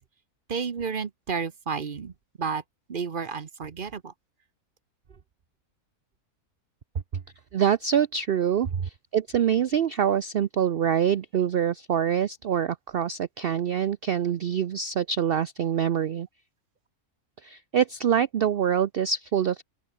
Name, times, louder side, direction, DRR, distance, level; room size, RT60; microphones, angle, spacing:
voice 1, 0.5-2.1 2.4-2.6 2.9-4.1 7.1-7.2, right 5 dB, 40° right, 1.0 m, -31 dB
voice 2, 7.5-16.3 17.4-19.6, right 8 dB, 55° right, 0.6 m, -25 dB
open air
omnidirectional pair, 1.5 m